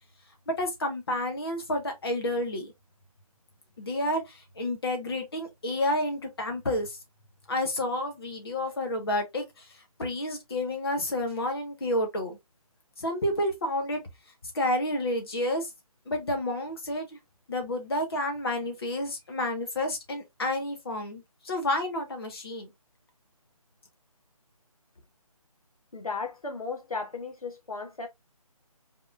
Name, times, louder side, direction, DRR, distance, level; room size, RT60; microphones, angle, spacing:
voice 1, 0.5-2.7 3.8-7.0 7.5-9.7 10.0-12.4 13.0-14.0 14.5-15.7 16.1-17.1 17.5-22.7, left 1 dB, 40° left, 1.5 m, -30 dB
voice 2, 25.9-28.1, left 4 dB, 70° left, 1.4 m, -35 dB
4.8 x 3.6 x 2.5 m
figure-of-eight pair, 150°, 19 cm